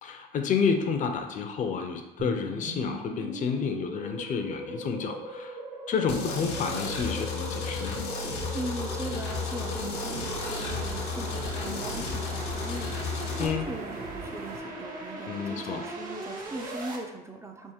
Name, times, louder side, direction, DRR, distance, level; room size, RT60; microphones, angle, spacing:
voice 1, 0.0-5.6 5.9-8.0 13.4-13.7 15.3-15.8, left 6 dB, 50° left, 5 dB, 0.5 m, -30 dB
sound 1, 2.2-17.0, right 2 dB, 55° right, 0.9 m, -39 dB
sound 2, 6.1-13.5, left 5 dB, 85° left, 0.7 m, -34 dB
voice 2, 8.5-17.7, right 2 dB, 15° right, 3 dB, 0.4 m, -39 dB
sound 3, 10.2-14.6, right 6 dB, 75° right, 0.5 m, -44 dB
3.6 x 2.5 x 4.3 m, 1.0 s
cardioid pair, 110°, 17 cm